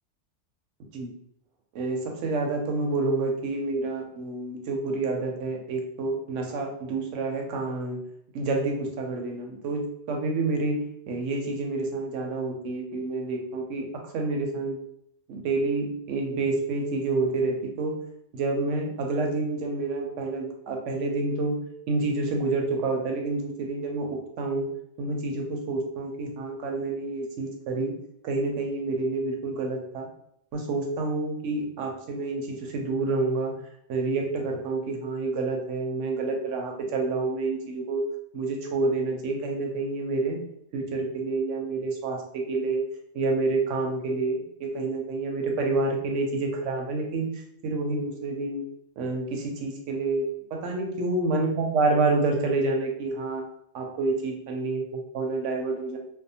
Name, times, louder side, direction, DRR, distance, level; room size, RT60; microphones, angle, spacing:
voice 1, 1.7-8.0 8.3-14.8 15.3-17.9 18.3-21.6 21.9-24.7 25.0-28.0 28.2-30.1 30.5-33.5 33.9-38.1 38.3-40.4 40.7-42.8 43.1-48.7 49.0-50.3 50.5-53.4 53.7-56.0, right 3 dB, 90° right, 2 dB, 0.9 m, -28 dB
2.6 x 2.1 x 2.7 m, 0.73 s
omnidirectional pair, 1.2 m